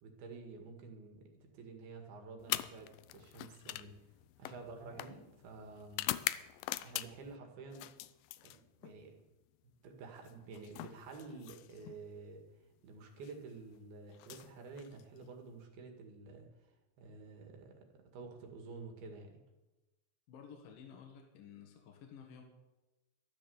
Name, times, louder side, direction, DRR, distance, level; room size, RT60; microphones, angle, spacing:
voice 1, 0.0-4.0 4.4-6.1 6.8-7.9 8.4-9.2 9.8-12.4 12.8-16.5 17.0-19.4, right 4 dB, 75° right, 3 dB, 3.9 m, -50 dB
sound 1, 2.4-7.4 7.7-9.0 10.2-12.0 13.1-13.3 14.1-15.3, left 16 dB, 80° left, 2.0 m, -42 dB
voice 2, 20.3-22.4, left 7 dB, 65° left, 2 dB, 3.2 m, -53 dB
12.5 x 12.5 x 7.1 m, 1.0 s
omnidirectional pair, 4.4 m